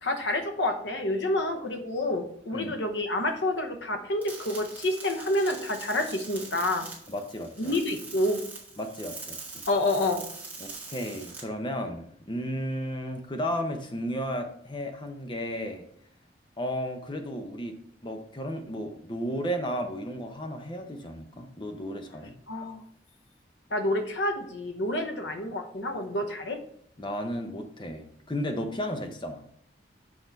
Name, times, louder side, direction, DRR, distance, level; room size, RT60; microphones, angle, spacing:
voice 1, 0.0-6.9 7.6-8.4 9.7-10.2 22.5-22.8 23.7-26.6, left 1 dB, 80° left, 6 dB, 0.9 m, -28 dB
sound 1, 4.2-11.4, right 3 dB, 10° right, 1.7 m, -43 dB
voice 2, 7.1-7.8 8.8-9.6 10.6-15.8 16.6-17.8 18.0-22.3 27.0-29.4, equal, 25° left, 5 dB, 0.8 m, -34 dB
6.3 x 4.8 x 4.0 m, 0.69 s
head